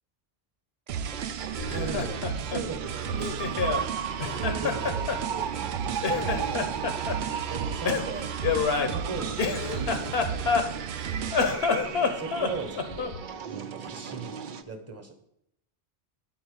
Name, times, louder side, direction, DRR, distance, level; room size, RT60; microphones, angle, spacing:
sound 1, 0.9-14.6, right 7 dB, 55° right, 0.7 m, -36 dB
sound 2, 0.9-11.5, right 8 dB, 90° right, 0.8 m, -34 dB
Laughter, 1.6-3.9 4.2-5.7 6.0-7.2 7.8-10.9 11.3-13.2, left 5 dB, 80° left, 1.1 m, -28 dB
voice 1, 1.7-3.9 4.4-6.9 7.5-8.3 8.8-10.6 12.1-13.1 13.4-14.4 14.7-15.1, right 4 dB, 15° right, 5 dB, 1.1 m, -39 dB
10.0 x 4.2 x 7.1 m, 0.77 s
omnidirectional pair, 1.0 m